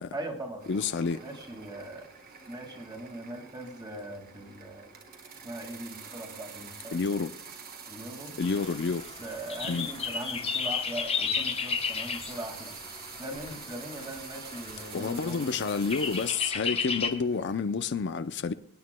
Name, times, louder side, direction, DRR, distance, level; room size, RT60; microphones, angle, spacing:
voice 1, 0.1-0.6 1.2-2.1 2.5-4.9 5.4-7.1 7.9-8.3 9.2-12.7 13.2-15.7, right 1 dB, 20° right, 2.0 m, -40 dB
sound 1, 0.6-17.6, right 6 dB, 45° right, 1.5 m, -47 dB
voice 2, 0.7-1.2 6.9-7.3 8.4-9.0 9.7-9.9 14.9-18.5, left 5 dB, 50° left, 0.5 m, -29 dB
sound 2, 8.4-17.1, left 6 dB, 25° left, 0.9 m, -34 dB
25.0 x 9.6 x 2.2 m
head